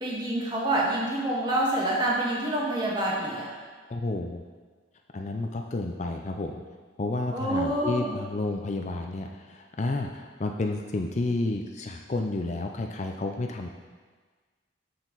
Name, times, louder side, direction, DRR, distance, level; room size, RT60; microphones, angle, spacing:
voice 1, 0.0-3.5 7.3-8.2, right 1 dB, 25° right, -4 dB, 1.6 m, -27 dB
voice 2, 3.9-4.4 5.1-6.6 7.0-13.7, left 2 dB, 35° left, 3 dB, 0.4 m, -31 dB
13.0 x 4.5 x 4.0 m, 1.5 s
head